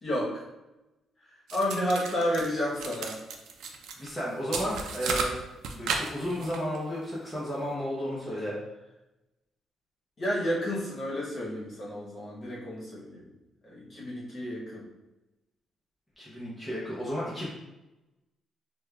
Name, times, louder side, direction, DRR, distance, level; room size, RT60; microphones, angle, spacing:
voice 1, 0.0-0.5 1.5-3.2 10.2-13.2 13.6-14.8, equal, 30° left, -6 dB, 1.0 m, -31 dB
sound 1, 1.5-2.5 2.8-4.1 4.5-6.8, right 4 dB, 75° right, 0.4 m, -34 dB
voice 2, 4.0-5.4 5.7-8.6 16.2-17.5, equal, 5° left, -8 dB, 0.6 m, -33 dB
4.9 x 2.2 x 2.3 m, 0.98 s
cardioid pair, 170°, 0 cm